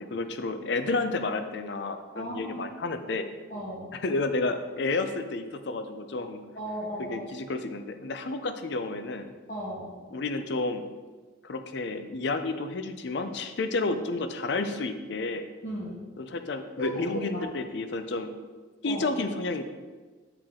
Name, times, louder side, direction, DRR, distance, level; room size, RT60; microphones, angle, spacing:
voice 1, 0.0-3.3 4.0-6.4 7.0-9.3 10.1-10.8 11.4-15.4 16.2-18.3 18.8-19.6, left 3 dB, 55° left, 9 dB, 0.5 m, -31 dB
voice 2, 2.1-2.7 3.5-3.9 6.5-7.2 9.5-9.9 15.6-16.0 16.8-17.5 18.8-19.1, equal, 40° left, -6 dB, 1.1 m, -35 dB
8.6 x 4.5 x 3.7 m, 1.4 s
head